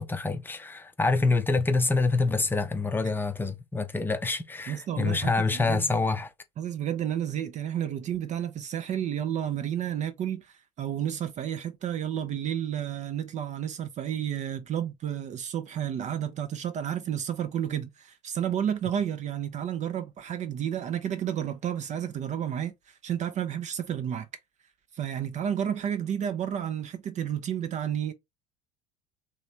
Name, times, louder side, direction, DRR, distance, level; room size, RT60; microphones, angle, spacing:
voice 1, 0.0-6.3, left 3 dB, 10° left, 0.6 m, -26 dB
voice 2, 4.7-5.9 6.6-24.3 24.9-28.1, right 9 dB, 35° right, 0.5 m, -31 dB
3.1 x 2.7 x 3.2 m
hypercardioid pair, 75°, 21 cm